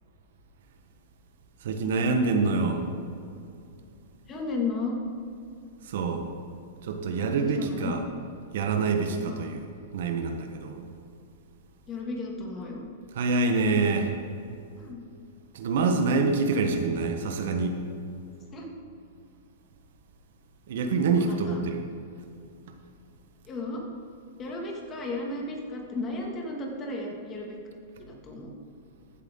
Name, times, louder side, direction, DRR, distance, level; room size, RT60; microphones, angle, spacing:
voice 1, 1.6-2.9 5.8-6.3 6.8-8.0 8.5-9.7 9.9-10.8 13.1-14.1 15.5-17.8 20.7-21.8, right 4 dB, 70° right, 5 dB, 1.2 m, -26 dB
voice 2, 4.3-5.0 7.4-8.0 9.3-9.5 11.9-12.8 14.8-15.0 18.5-18.7 21.3-21.6 23.4-23.9 24.4-27.6 28.1-28.5, left 3 dB, 25° left, 0 dB, 2.0 m, -34 dB
15.0 x 8.1 x 3.8 m, 2.5 s
hypercardioid pair, 135°, 0 cm